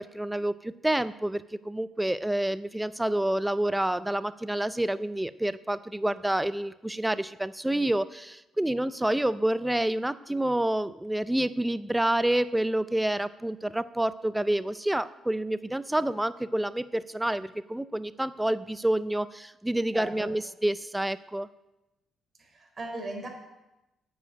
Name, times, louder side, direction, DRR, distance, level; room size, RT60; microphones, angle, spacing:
voice 1, 0.0-21.5, right 1 dB, 5° right, 14 dB, 0.5 m, -28 dB
voice 2, 19.9-20.3 22.4-23.3, right 2 dB, 30° right, 2 dB, 4.1 m, -38 dB
9.9 x 7.7 x 8.9 m, 0.96 s
cardioid pair, 90°, 0 cm